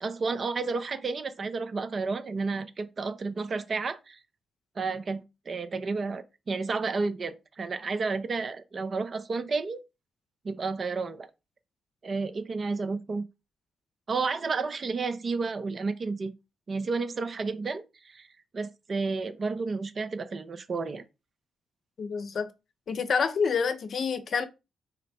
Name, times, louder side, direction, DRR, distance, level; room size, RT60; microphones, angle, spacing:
voice 1, 0.0-4.2 4.8-9.8 10.4-11.3 12.0-13.2 14.1-16.3 16.7-18.3 18.5-21.0, right 4 dB, 50° right, 0.6 m, -31 dB
voice 2, 22.0-22.5 22.9-24.5, left 5 dB, 60° left, 0.6 m, -27 dB
4.1 x 2.1 x 4.2 m
hypercardioid pair, 50°, 0 cm